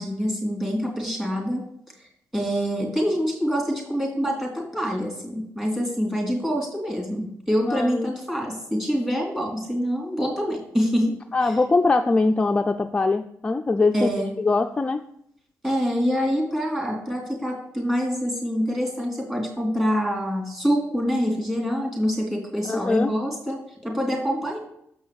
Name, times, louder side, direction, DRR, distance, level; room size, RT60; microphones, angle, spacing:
voice 1, 0.0-1.6 2.3-11.1 11.4-11.5 13.9-14.3 15.6-24.6, equal, 10° right, -2 dB, 3.2 m, -25 dB
voice 2, 7.6-8.1 11.3-14.1 14.4-15.0 22.7-23.1, left 3 dB, 20° left, 5 dB, 0.4 m, -22 dB
7.0 x 5.5 x 6.8 m, 0.73 s
cardioid pair, 110°, 5 cm